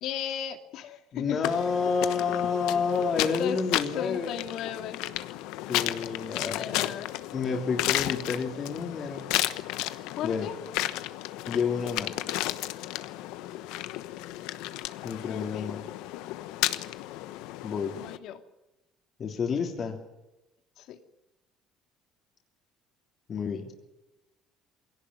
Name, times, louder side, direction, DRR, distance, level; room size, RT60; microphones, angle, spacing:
voice 1, 0.0-1.5 3.4-3.6 3.9-5.0 6.1-7.1 10.2-10.5 12.7-12.9 15.3-15.7 18.0-18.4 20.8-21.0, left 10 dB, 65° left, 7 dB, 2.4 m, -36 dB
voice 2, 1.1-4.4 5.7-7.0 7.3-9.3 10.2-10.5 11.5-12.1 15.0-15.8 17.6-17.9 19.2-20.0 23.3-23.7, left 5 dB, 40° left, 2 dB, 3.2 m, -29 dB
sound 1, 1.4-18.2, left 16 dB, 85° left, 1.1 m, -33 dB
22.0 x 17.5 x 9.6 m, 0.99 s
cardioid pair, 130°, 0 cm